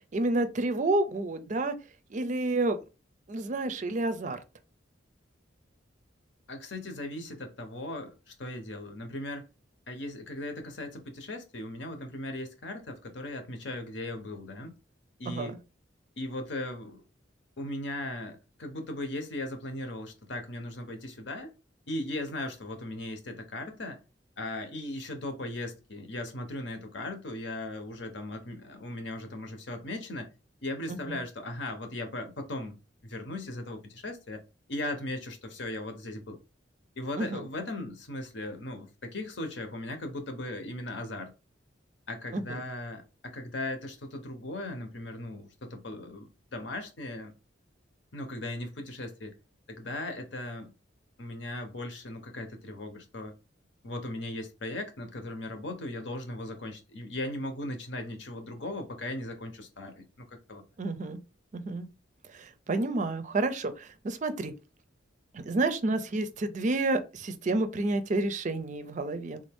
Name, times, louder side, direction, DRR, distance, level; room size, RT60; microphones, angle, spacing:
voice 1, 0.1-1.7 2.1-2.8 3.3-4.4 15.3-15.6 30.9-31.2 37.2-37.4 42.3-42.6 60.8-61.2 61.5-61.9 62.3-64.6 65.3-69.4, right 2 dB, 40° right, 0.4 m, -30 dB
voice 2, 6.5-9.5 9.9-14.7 15.2-15.6 16.2-17.0 17.6-21.5 21.9-24.0 24.4-30.3 30.6-32.7 33.0-34.4 34.7-36.4 37.0-41.3 42.1-47.3 48.1-49.3 49.7-50.7 51.2-53.3 53.8-60.6, left 1 dB, 70° left, 0.9 m, -38 dB
3.4 x 2.6 x 3.4 m
head